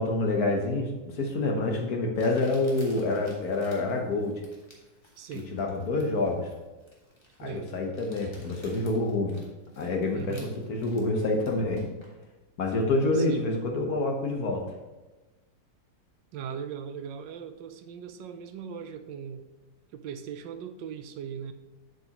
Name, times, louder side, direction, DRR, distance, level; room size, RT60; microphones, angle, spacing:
voice 1, 0.0-4.4 5.5-6.5 7.4-9.4 9.8-10.4 10.7-11.8 12.6-14.7, left 2 dB, 55° left, 2 dB, 1.4 m, -27 dB
Crumpling crinkling, 1.2-1.3 2.1-12.2, left 1 dB, 15° left, 1.4 m, -53 dB
voice 2, 5.2-5.5 7.4-7.8 10.1-10.5 13.1-13.5 16.3-19.4 19.9-21.5, right 7 dB, 80° right, 9 dB, 1.3 m, -39 dB
8.2 x 8.0 x 2.9 m, 1.1 s
omnidirectional pair, 2.0 m